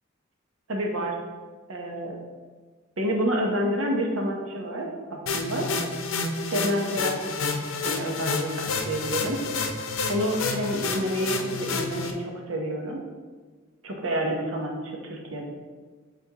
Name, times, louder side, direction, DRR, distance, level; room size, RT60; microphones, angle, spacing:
voice 1, 0.7-1.1 1.7-2.2 3.0-5.7 6.5-7.2 7.8-9.4 10.1-13.0 13.8-15.4, equal, 85° right, 0 dB, 1.1 m, -28 dB
sound 1, 5.3-12.1, left 4 dB, 70° left, 0.6 m, -29 dB
7.9 x 4.4 x 3.0 m, 1.4 s
head